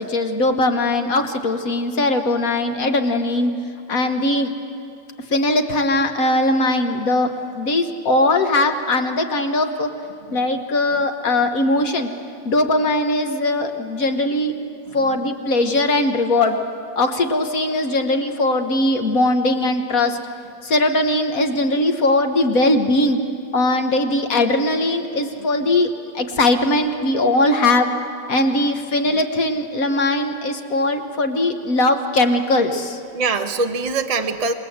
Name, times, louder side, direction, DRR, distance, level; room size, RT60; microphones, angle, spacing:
voice 1, 0.0-3.5 3.9-4.5 5.3-9.9 10.3-12.1 12.4-14.5 14.9-16.6 17.0-20.2 20.6-23.2 23.5-27.9 28.3-33.0, left 2 dB, 50° left, 6 dB, 1.4 m, -20 dB
voice 2, 10.3-10.6 10.9-11.0 11.4-11.5 14.9-15.2 15.7-15.8 25.3-25.7 29.0-29.2 33.1-34.5, right 4 dB, 30° right, 6 dB, 0.7 m, -26 dB
26.5 x 20.0 x 7.9 m, 2.7 s
omnidirectional pair, 2.0 m